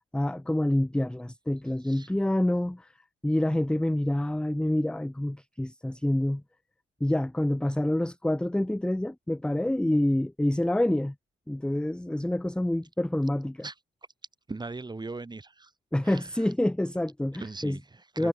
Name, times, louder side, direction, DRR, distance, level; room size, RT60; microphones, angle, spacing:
voice 1, 0.1-2.9 3.2-6.4 7.0-11.1 11.5-13.7 15.9-17.8 18.2-18.3, left 1 dB, 5° left, 0.8 m, -27 dB
voice 2, 14.5-15.7 16.0-16.5 17.4-18.3, right 3 dB, 20° right, 5.6 m, -39 dB
cardioid pair, 90°, 20 cm